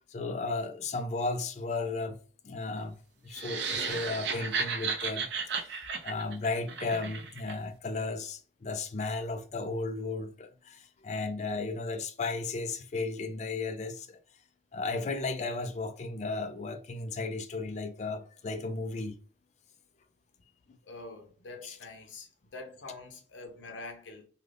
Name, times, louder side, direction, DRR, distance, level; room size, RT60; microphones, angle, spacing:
voice 1, 0.1-2.2 2.4-14.2 14.7-19.2 21.6-21.8, left 3 dB, 40° left, 0.3 m, -35 dB
sound 1, 3.3-7.5, right 5 dB, 70° right, 0.5 m, -34 dB
voice 2, 20.9-24.2, left 3 dB, 90° left, 0.7 m, -45 dB
2.4 x 2.3 x 3.2 m
head